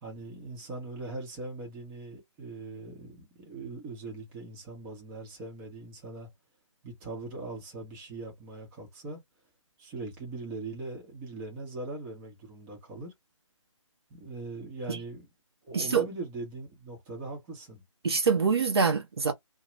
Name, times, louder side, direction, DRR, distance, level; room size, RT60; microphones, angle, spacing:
voice 1, 0.0-6.3 6.8-9.2 9.8-13.1 14.1-15.3 15.6-17.8, right 2 dB, 15° right, 1.0 m, -40 dB
voice 2, 18.0-19.3, right 5 dB, 50° right, 0.8 m, -25 dB
2.8 x 2.2 x 3.2 m
figure-of-eight pair, 140°, 17 cm